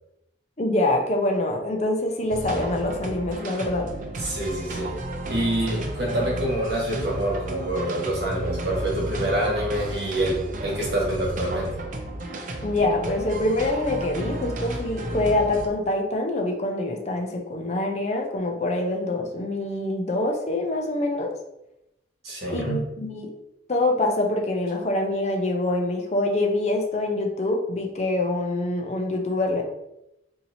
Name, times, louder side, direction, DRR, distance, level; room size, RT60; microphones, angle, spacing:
voice 1, 0.6-3.9 12.6-21.3 22.5-23.3 23.7-29.6, left 2 dB, 35° left, 2 dB, 0.5 m, -25 dB
sound 1, 2.3-15.7, right 1 dB, 45° right, 0.5 m, -33 dB
voice 2, 4.2-4.9 5.3-11.7 22.2-22.8, right 1 dB, 65° right, -3 dB, 1.3 m, -26 dB
2.7 x 2.7 x 4.1 m, 0.85 s
head